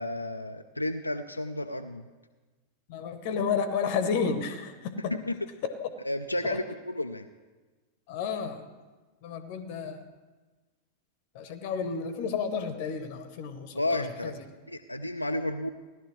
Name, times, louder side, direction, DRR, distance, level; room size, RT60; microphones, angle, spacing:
voice 1, 0.0-2.1 5.3-5.4 6.0-7.3 13.7-14.3 14.7-15.7, left 1 dB, 85° left, 6 dB, 0.4 m, -32 dB
voice 2, 2.9-5.1 5.8-5.9 6.4-6.6 8.1-8.7 9.2-10.1 11.3-14.4, left 6 dB, 45° left, 10 dB, 0.8 m, -31 dB
17.0 x 11.5 x 3.2 m, 1.3 s
figure-of-eight pair, 90°, 0 cm